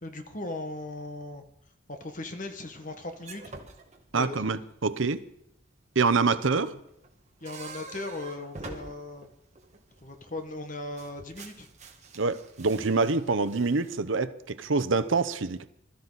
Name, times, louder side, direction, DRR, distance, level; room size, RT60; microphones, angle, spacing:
voice 1, 0.0-1.5 1.9-3.4 4.2-4.4 6.5-6.8 7.4-9.3 10.0-11.7, left 2 dB, 40° left, 1.5 m, -38 dB
sound 1, 2.7-4.8 6.3-10.6 10.9-14.0, right 3 dB, 35° right, 1.8 m, -47 dB
voice 2, 4.1-5.2 6.0-6.7 12.2-15.7, right 4 dB, 80° right, 0.8 m, -26 dB
20.5 x 13.5 x 4.1 m
head